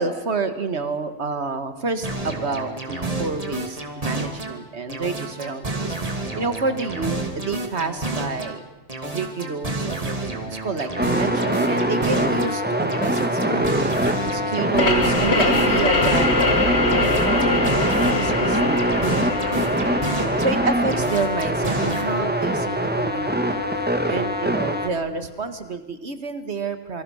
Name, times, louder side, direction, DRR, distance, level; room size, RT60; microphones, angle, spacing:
voice 1, 0.0-6.0 6.3-8.6 9.0-13.7 14.2-16.3 16.9-19.2 19.6-23.6 24.1-27.0, right 4 dB, 65° right, 9 dB, 2.1 m, -29 dB
sound 1, 2.0-4.6 4.9-8.6 8.9-12.6 12.9-16.6 16.9-20.6 20.9-22.0, right 2 dB, 30° right, 2.8 m, -30 dB
sound 2, 11.0-24.9, equal, 10° right, 1.7 m, -23 dB
sound 3, 14.7-24.1, left 3 dB, 65° left, 2.2 m, -25 dB
28.0 x 24.5 x 6.5 m, 1.0 s
omnidirectional pair, 1.2 m